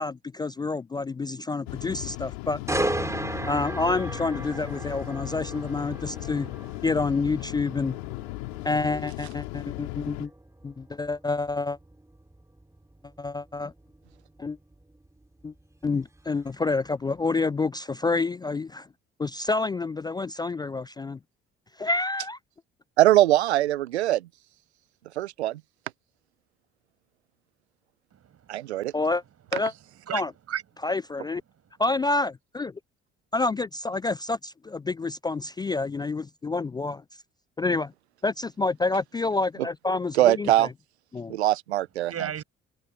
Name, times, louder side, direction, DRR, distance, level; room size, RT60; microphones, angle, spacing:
voice 1, 0.0-2.6 3.5-6.5 6.8-8.0 8.6-10.3 10.6-11.8 13.2-13.7 14.4-14.6 15.4-15.5 15.8-18.9 19.2-21.2 21.8-22.4 28.9-29.2 29.5-29.7 30.1-30.3 30.8-31.4 31.8-32.7 33.3-37.0 37.6-37.9 38.2-40.7 41.1-41.3, left 3 dB, 15° left, 0.3 m, -28 dB
sound 1, 1.7-10.3, left 30 dB, 75° left, 3.3 m, -37 dB
sound 2, 2.7-16.5 16.9-17.2, right 1 dB, 10° right, 3.2 m, -36 dB
voice 2, 23.0-24.3 25.2-25.6 28.5-28.9 40.1-40.7 41.3-42.1, right 14 dB, 85° right, 0.7 m, -22 dB
voice 3, 28.1-29.0 30.1-30.2 30.5-30.6 42.1-42.4, right 9 dB, 50° right, 6.1 m, -34 dB
open air
hypercardioid pair, 50°, 32 cm